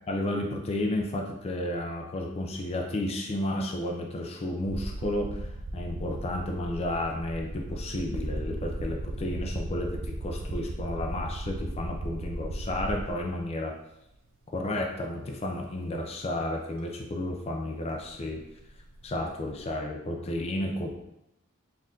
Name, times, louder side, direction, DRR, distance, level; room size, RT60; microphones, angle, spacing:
voice 1, 0.1-5.5 5.7-13.7 14.5-18.4 19.0-20.9, left 1 dB, 30° left, 1 dB, 0.4 m, -32 dB
sound 1, 4.6-13.4 14.5-14.6 16.8-16.9 17.1-19.7, right 1 dB, 60° right, 0.5 m, -37 dB
4.3 x 2.5 x 3.6 m, 0.87 s
head